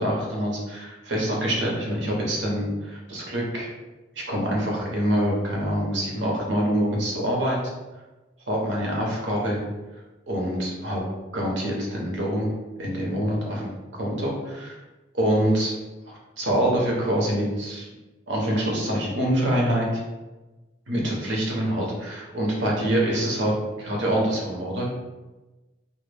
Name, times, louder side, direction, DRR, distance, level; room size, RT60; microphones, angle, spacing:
voice 1, 0.0-3.7 4.3-7.6 8.5-9.6 10.3-11.0 11.3-12.5 12.8-13.7 14.0-14.7 15.1-15.7 16.1-17.9 18.3-19.9 20.9-24.9, equal, 80° right, -3 dB, 0.7 m, -25 dB
2.1 x 2.1 x 3.2 m, 1.1 s
head